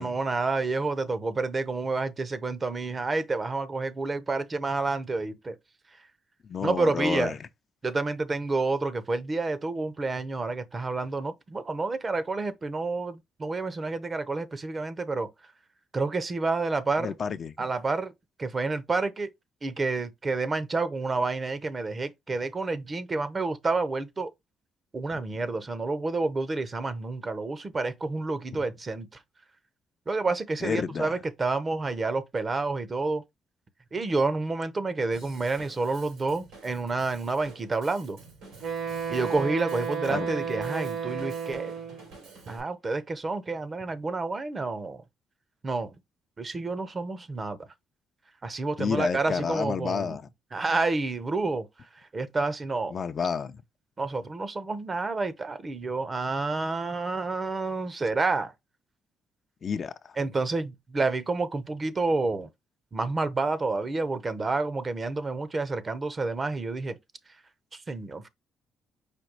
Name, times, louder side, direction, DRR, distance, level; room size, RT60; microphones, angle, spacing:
voice 1, 0.0-5.6 6.6-7.3 7.8-15.3 15.9-17.1 17.6-18.1 18.4-19.3 19.6-24.3 24.9-29.1 30.1-33.2 33.9-38.2 39.1-41.7 42.5-45.0 45.6-46.0 46.4-47.6 48.4-50.2 50.5-51.7 52.1-52.9 54.0-58.5 60.2-62.5 62.9-67.0 67.7-68.2, right 3 dB, 30° right, 0.7 m, -29 dB
voice 2, 6.4-7.5 17.0-17.5 28.5-28.6 30.6-31.2 40.1-40.3 48.8-50.3 52.9-53.6 59.6-60.2, left 6 dB, 45° left, 0.5 m, -30 dB
Drum kit / Drum, 35.1-42.6, right 4 dB, 90° right, 3.5 m, -50 dB
Wind instrument woodwind instrument, 38.6-42.1, right 6 dB, 65° right, 1.2 m, -32 dB
5.1 x 2.3 x 4.5 m
cardioid pair, 90°, 0 cm